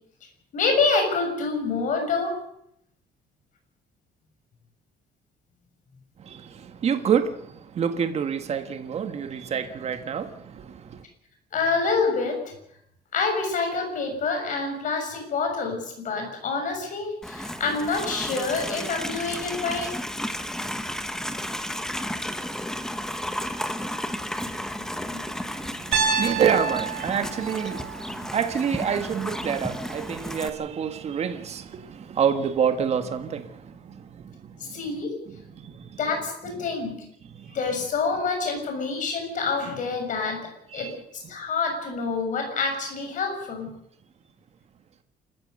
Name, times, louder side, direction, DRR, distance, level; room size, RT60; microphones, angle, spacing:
voice 1, 0.5-2.3 11.5-12.4 13.1-19.9 24.5-24.9 25.1-25.4 34.6-35.1 36.0-37.0 37.5-40.4 40.7-40.9 41.3-43.7, left 4 dB, 50° left, 6.5 m, -27 dB
voice 2, 6.2-11.0 25.6-34.7 35.6-36.0 37.3-37.5 40.8-40.9, right 7 dB, 40° right, 1.6 m, -28 dB
Livestock farm animals working animals, 17.2-30.5, left 1 dB, 5° left, 1.1 m, -33 dB
Piano, 25.9-30.0, right 6 dB, 70° right, 3.7 m, -30 dB
28.5 x 14.0 x 6.6 m
cardioid pair, 165°, 17 cm